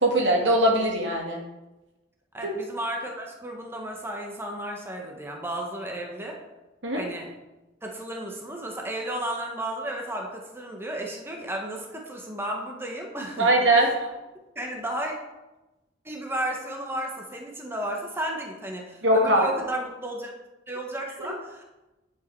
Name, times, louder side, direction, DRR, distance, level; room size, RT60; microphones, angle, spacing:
voice 1, 0.0-1.4 2.4-2.5 6.8-7.0 13.4-13.9 19.0-19.5, right 1 dB, 80° right, 0 dB, 2.3 m, -21 dB
voice 2, 2.3-6.4 6.9-7.3 7.8-13.5 13.8-14.0 14.5-15.1 16.0-20.3 20.7-21.6, right 1 dB, 15° right, 0 dB, 1.4 m, -33 dB
10.5 x 7.8 x 4.8 m, 1.0 s
head